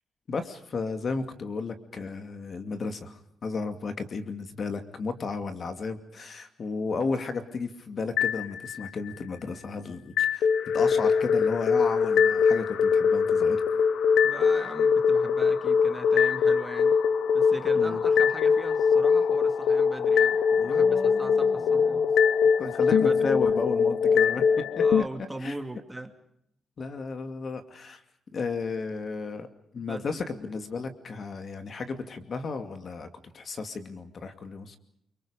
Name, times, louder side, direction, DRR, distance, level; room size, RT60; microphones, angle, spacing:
voice 1, 0.3-10.5 10.7-13.6 17.7-18.0 20.5-22.1 22.6-24.4 24.8-24.9 25.4-25.5 26.8-28.0 28.3-29.5 29.7-33.1 33.3-34.8, left 4 dB, 45° left, 8 dB, 2.5 m, -34 dB
sound 1, 8.2-9.1 10.2-25.0, left 6 dB, 80° left, 1.0 m, -22 dB
voice 2, 14.2-17.0 17.3-22.1 22.6-23.3 24.8-26.1 29.8-30.2, right 2 dB, 10° right, 6 dB, 2.6 m, -40 dB
29.5 x 25.0 x 5.1 m, 0.71 s
cardioid pair, 115°, 0 cm